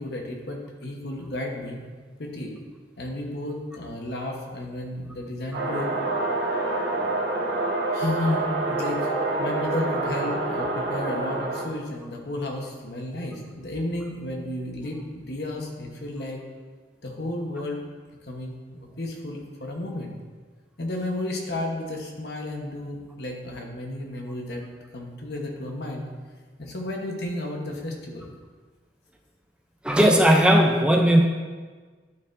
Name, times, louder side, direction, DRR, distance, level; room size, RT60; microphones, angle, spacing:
voice 1, 0.0-1.8 2.2-2.5 3.0-5.9 7.9-16.4 17.0-17.8 18.2-20.1 20.8-24.7 24.9-26.1 26.6-28.3, left 1 dB, 70° left, 1 dB, 1.1 m, -32 dB
sound 1, 5.5-11.6, right 2 dB, 80° right, 1.7 m, -27 dB
voice 2, 29.8-31.2, equal, 5° right, 1 dB, 0.5 m, -17 dB
12.0 x 4.4 x 2.6 m, 1.4 s
head